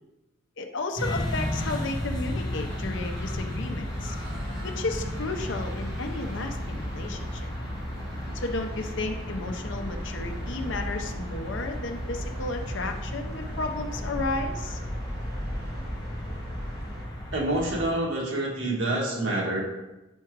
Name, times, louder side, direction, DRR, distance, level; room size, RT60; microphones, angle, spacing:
voice 1, 0.6-4.1 4.6-7.5 8.3-14.8, left 2 dB, 70° left, 4 dB, 0.7 m, -33 dB
sound 1, 1.0-17.9, left 1 dB, 20° left, 1.0 m, -34 dB
sound 2, 2.5-17.1, right 1 dB, 55° right, 1.2 m, -41 dB
voice 2, 17.3-19.6, right 1 dB, 90° right, -3 dB, 1.5 m, -27 dB
4.8 x 4.5 x 4.6 m, 1.0 s
head